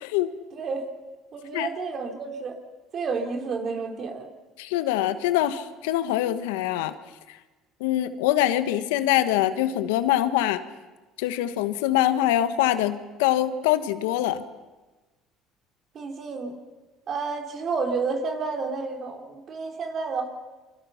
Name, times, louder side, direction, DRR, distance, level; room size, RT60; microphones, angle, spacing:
voice 1, 0.5-0.9 1.3-2.6 2.9-4.3 15.9-16.6 17.1-20.3, right 4 dB, 45° right, 4 dB, 3.8 m, -30 dB
voice 2, 4.6-6.9 7.3-7.4 7.8-10.6 11.2-14.4, left 13 dB, 90° left, 11 dB, 1.3 m, -24 dB
28.0 x 24.5 x 5.8 m, 1.2 s
supercardioid pair, 85°, 0 cm